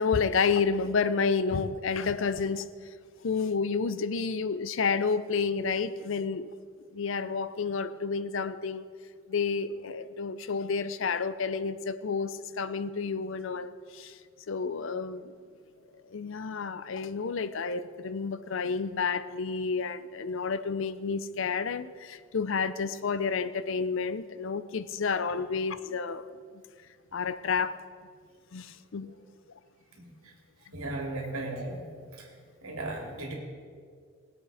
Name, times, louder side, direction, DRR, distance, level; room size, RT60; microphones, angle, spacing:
voice 1, 0.0-2.7 3.2-6.5 6.9-8.8 9.3-14.2 14.5-15.3 16.1-26.2 27.1-27.8 28.5-29.1, left 5 dB, 65° left, 14 dB, 0.5 m, -30 dB
voice 2, 30.7-31.8 32.2-32.3 32.6-33.3, right 2 dB, 85° right, 0 dB, 2.8 m, -35 dB
20.5 x 8.0 x 4.9 m, 2.1 s
head